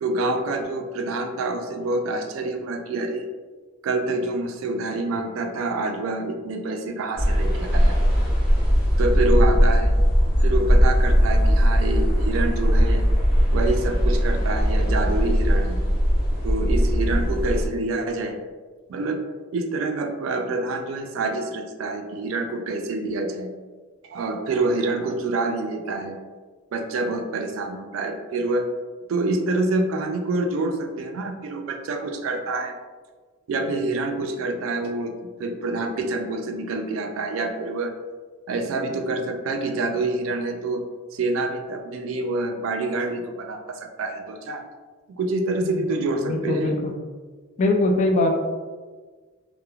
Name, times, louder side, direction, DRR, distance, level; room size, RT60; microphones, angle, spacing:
voice 1, 0.0-3.3 3.8-8.0 9.0-10.0 10.4-13.1 13.5-15.8 16.4-18.4 18.9-19.2 19.5-23.5 24.0-26.2 26.7-28.7 29.1-32.8 33.5-37.9 38.5-40.8 41.1-44.6 45.2-46.8, right 2 dB, 75° right, 5 dB, 0.3 m, -27 dB
sound 1, 7.2-17.7, equal, 5° right, 0.9 m, -19 dB
voice 2, 46.2-47.0 47.6-48.3, left 2 dB, 35° left, 1 dB, 0.3 m, -22 dB
3.0 x 2.0 x 2.3 m, 1.4 s
head